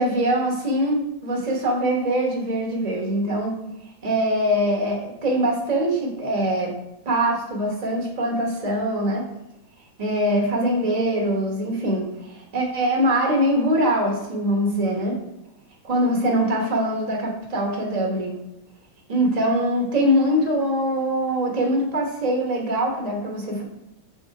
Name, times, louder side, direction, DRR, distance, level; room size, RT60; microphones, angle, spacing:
voice 1, 0.0-3.6 4.0-6.7 7.0-9.2 10.0-15.2 15.8-18.4 19.1-23.6, equal, 25° right, 0 dB, 0.9 m, -23 dB
6.5 x 3.5 x 4.5 m, 0.89 s
omnidirectional pair, 2.4 m